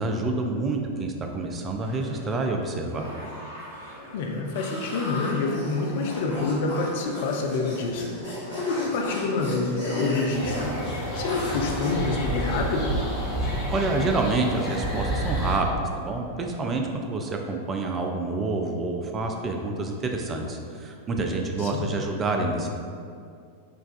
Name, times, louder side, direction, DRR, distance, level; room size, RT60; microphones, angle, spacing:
voice 1, 0.0-3.1 13.7-15.7 16.0-22.7, right 3 dB, 25° right, 2 dB, 0.4 m, -28 dB
sound 1, 1.8-14.4, equal, 75° right, 1.4 m, -45 dB
voice 2, 4.1-8.1 8.5-13.0 21.6-21.9, left 3 dB, 50° left, 1 dB, 0.4 m, -27 dB
sound 2, 4.5-12.0, left 1 dB, 70° left, 1.0 m, -36 dB
sound 3, 10.3-15.6, right 1 dB, 30° left, 0.9 m, -29 dB
4.5 x 2.3 x 2.4 m, 2.3 s
figure-of-eight pair, 90°, 0 cm